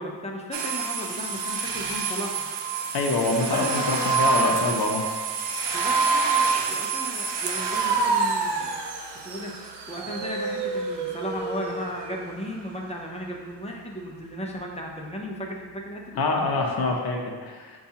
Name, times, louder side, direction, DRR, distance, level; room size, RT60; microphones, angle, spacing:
voice 1, 0.0-2.5 3.5-4.8 5.7-8.7 9.2-9.6 9.9-16.2, equal, 15° left, -1 dB, 0.5 m, -35 dB
sound 1, 0.5-12.2, right 4 dB, 75° right, 0.5 m, -27 dB
voice 2, 2.9-5.0 16.2-17.8, left 3 dB, 60° left, 0 dB, 0.6 m, -25 dB
6.7 x 2.3 x 2.7 m, 1.5 s
wide cardioid pair, 120°, 43 cm